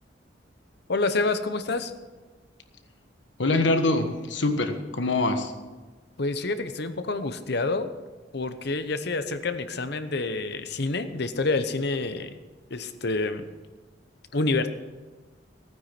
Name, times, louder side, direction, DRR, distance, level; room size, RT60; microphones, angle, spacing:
voice 1, 0.9-1.9 6.2-7.9 8.3-12.3 12.7-13.5 14.3-14.7, left 3 dB, 65° left, 10 dB, 1.0 m, -27 dB
voice 2, 3.4-5.5, left 2 dB, 85° left, 7 dB, 1.4 m, -24 dB
15.5 x 9.4 x 6.0 m, 1.3 s
head